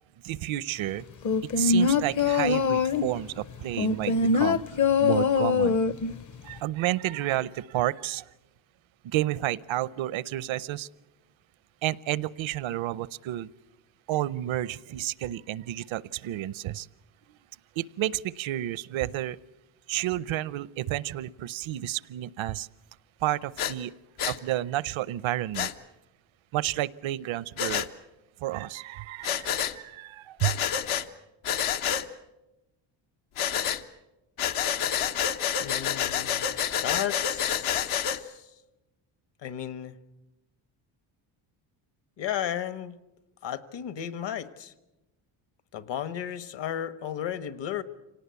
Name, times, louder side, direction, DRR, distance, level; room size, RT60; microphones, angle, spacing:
voice 1, 0.2-1.0 1.6-5.8 6.4-8.3 9.0-10.9 11.8-13.5 14.1-16.9 17.3-17.4 17.8-19.4 19.9-22.7 23.2-23.9 24.3-25.7 26.5-27.9 28.4-30.6, right 14 dB, 70° right, 21 dB, 0.7 m, -31 dB
sound 1, 1.2-3.2 3.8-6.2 6.5-6.6, left 5 dB, 40° left, 0.8 m, -23 dB
Breathing, 23.6-23.7 24.2-24.4 25.5-25.7 27.6-27.9 29.2-29.7 30.4-31.0 31.4-32.0 33.4-33.8 34.4-38.2, left 9 dB, 80° left, 1.3 m, -28 dB
voice 2, 35.6-36.5 36.8-38.5 39.4-40.0 42.2-42.9 43.4-44.7 45.7-47.8, left 10 dB, 60° left, 14 dB, 1.3 m, -34 dB
26.0 x 18.5 x 8.3 m, 1.0 s
cardioid pair, 120°, 50 cm